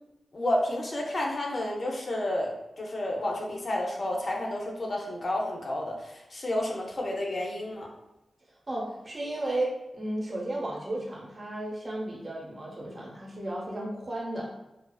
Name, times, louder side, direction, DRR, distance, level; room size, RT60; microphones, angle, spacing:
voice 1, 0.3-2.5 2.8-7.9, left 1 dB, 50° left, -1 dB, 0.5 m, -30 dB
voice 2, 8.7-14.5, right 1 dB, 40° right, -3 dB, 0.8 m, -34 dB
2.4 x 2.3 x 2.2 m, 0.96 s
wide cardioid pair, 80°, 0 cm